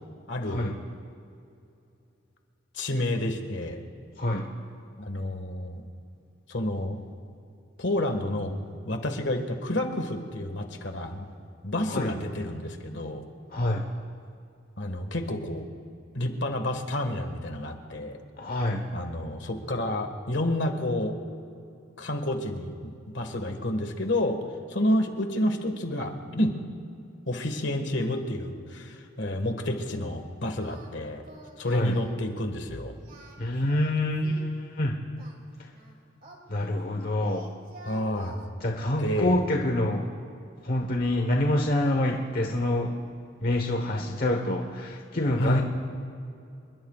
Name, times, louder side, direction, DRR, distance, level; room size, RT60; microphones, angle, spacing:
voice 1, 0.3-0.7 2.7-3.8 5.0-5.8 6.5-7.0 7.8-8.6 8.8-11.3 11.6-13.2 14.8-15.7 16.1-18.2 18.9-21.1 22.0-24.4 24.7-26.6 27.2-31.2 31.6-32.9 37.8-38.4 39.0-39.4 45.4-45.6, left 1 dB, 70° left, 5 dB, 1.7 m, -29 dB
voice 2, 13.5-13.9 18.4-18.9 31.7-32.0 33.4-35.0 36.5-37.5 38.6-40.1 40.6-42.9 43.4-45.6, left 1 dB, 50° left, 2 dB, 1.1 m, -26 dB
Singing, 30.6-30.9 31.2-31.6 31.9-32.2 32.9-34.5 35.2-36.9 37.2-38.4, right 2 dB, 50° right, 2.5 m, -49 dB
28.0 x 21.0 x 2.4 m, 2.6 s
head